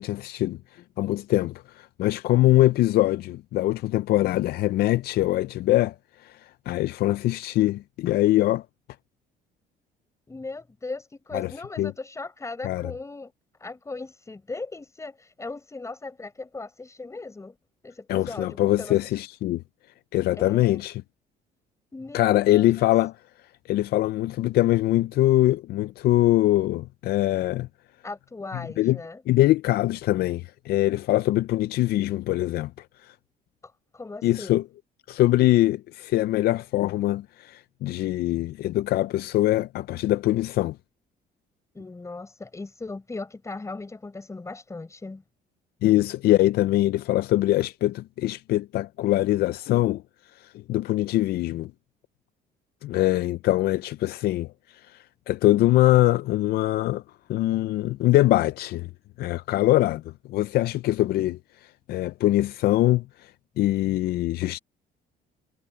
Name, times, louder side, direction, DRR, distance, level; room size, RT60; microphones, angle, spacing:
voice 1, 0.0-8.6 11.3-11.5 11.8-11.9 12.6-12.9 18.1-19.6 20.1-21.0 22.1-23.1 23.7-27.7 28.8-29.0 29.3-33.1 34.2-34.6 35.1-40.8 45.8-50.0 50.3-51.7 52.8-57.0 57.3-58.9 59.2-64.6, left 15 dB, 70° left, 0.5 m, -23 dB
voice 2, 10.3-13.3 13.6-17.6 17.8-19.0 20.4-20.8 21.9-22.9 28.0-29.2 33.6-34.6 41.7-45.2, left 3 dB, 15° left, 5.2 m, -38 dB
cardioid pair, 110°, 17 cm